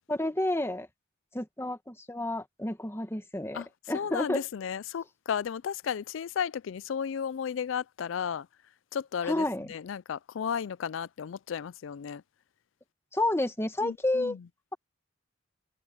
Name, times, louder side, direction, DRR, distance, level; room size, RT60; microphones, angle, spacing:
voice 1, 0.1-0.9 1.3-4.4 9.2-9.7 13.1-14.4, left 1 dB, 15° left, 1.6 m, -30 dB
voice 2, 3.9-8.5 8.9-12.2 13.8-14.4, left 7 dB, 75° left, 0.4 m, -34 dB
head